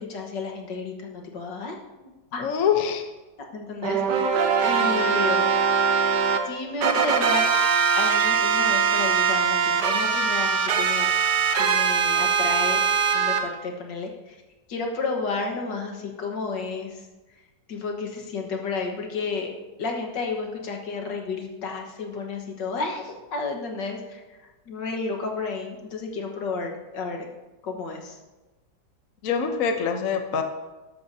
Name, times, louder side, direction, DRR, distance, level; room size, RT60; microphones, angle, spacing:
voice 1, 0.0-1.8 2.3-2.5 3.5-4.0 4.6-5.4 6.5-7.5 8.0-11.1 11.6-12.8 13.1-14.4 14.7-17.1 17.7-19.5 19.8-24.4 24.7-27.3 27.6-28.2, left 4 dB, 70° left, 2 dB, 2.0 m, -31 dB
voice 2, 2.4-3.0 29.2-30.4, left 7 dB, 55° left, 5 dB, 1.1 m, -24 dB
sound 1, 3.8-6.4 6.8-13.4, right 6 dB, 65° right, 1.5 m, -22 dB
13.5 x 11.5 x 2.7 m, 1.1 s
omnidirectional pair, 2.0 m